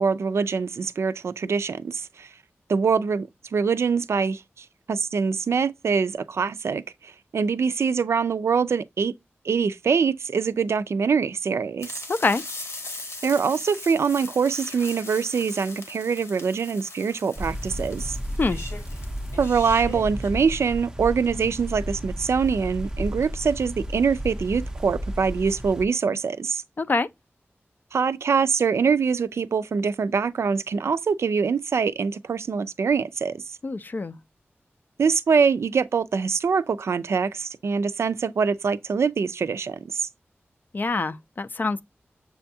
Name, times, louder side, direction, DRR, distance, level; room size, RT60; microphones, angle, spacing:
voice 1, 0.0-2.3 2.7-4.4 4.9-9.1 9.4-11.9 13.2-18.1 19.4-26.6 27.9-33.4 35.0-40.1, right 5 dB, 80° right, 0.3 m, -24 dB
sound 1, 11.8-20.3, left 2 dB, 80° left, 1.1 m, -40 dB
voice 2, 12.1-12.4 18.4-18.6 26.8-27.1 33.6-34.2 40.7-41.8, left 3 dB, 45° left, 0.4 m, -25 dB
sound 2, 17.4-25.9, equal, 15° right, 0.5 m, -33 dB
6.8 x 2.3 x 2.6 m
wide cardioid pair, 85°, 5 cm